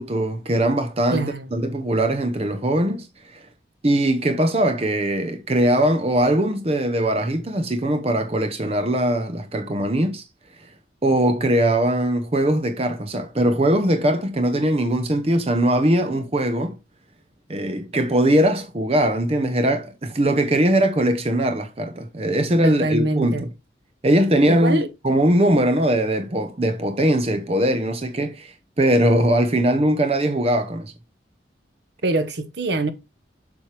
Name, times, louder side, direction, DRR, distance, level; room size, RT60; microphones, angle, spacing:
voice 1, 0.0-3.5 3.8-10.2 10.6-10.7 11.0-16.8 17.5-23.5 24.0-30.9, right 1 dB, 30° right, 0.7 m, -21 dB
voice 2, 1.1-1.5 22.6-23.5 24.5-24.9 32.0-32.9, right 2 dB, 65° right, 1.0 m, -24 dB
7.3 x 6.3 x 3.2 m
head